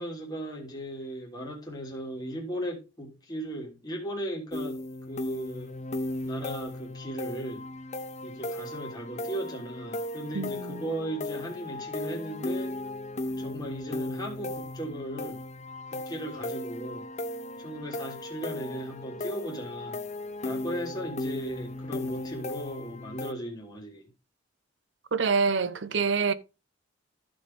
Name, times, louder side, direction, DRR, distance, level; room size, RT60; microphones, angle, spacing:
voice 1, 0.0-4.8 5.1-5.7 6.2-7.6 8.2-12.7 13.4-15.4 15.9-17.1 17.6-20.0 20.4-24.1, right 1 dB, 20° left, 3.2 m, -37 dB
sound 1, 4.5-23.3, left 1 dB, 35° left, 0.7 m, -36 dB
voice 2, 10.3-10.9 25.1-26.3, right 5 dB, 70° right, 0.7 m, -26 dB
14.5 x 5.2 x 3.7 m
head